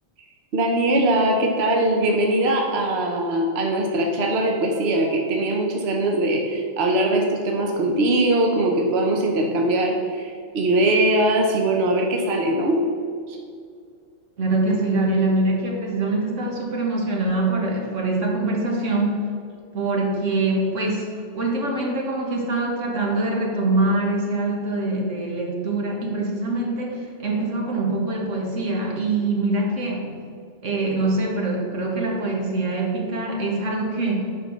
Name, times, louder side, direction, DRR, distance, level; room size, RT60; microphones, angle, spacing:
voice 1, 0.5-12.8 13.3-13.4, right 1 dB, 60° right, 1 dB, 1.2 m, -21 dB
voice 2, 14.4-19.3 19.7-30.2 30.6-34.2, right 2 dB, 85° right, -1 dB, 1.9 m, -24 dB
8.6 x 5.2 x 6.4 m, 2.2 s
omnidirectional pair, 1.3 m